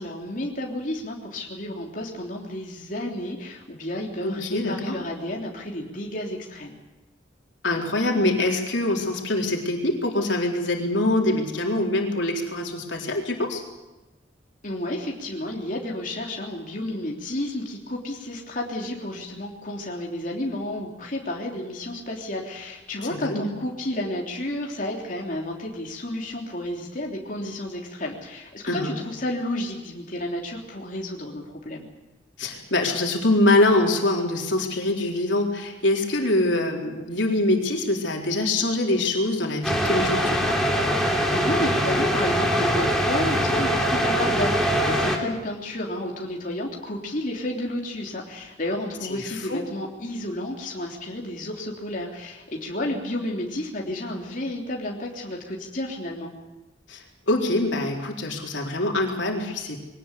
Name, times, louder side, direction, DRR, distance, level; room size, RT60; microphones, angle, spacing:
voice 1, 0.0-6.8 14.6-31.8 41.3-56.3, left 1 dB, 45° left, -1 dB, 3.4 m, -31 dB
voice 2, 4.2-5.0 7.6-13.6 23.1-23.5 28.7-29.0 32.4-40.6 49.1-49.6 56.9-59.8, left 2 dB, 85° left, 1 dB, 4.0 m, -24 dB
sound 1, 39.6-45.2, equal, ahead, 3.1 m, -23 dB
23.0 x 18.5 x 8.4 m, 1.1 s
head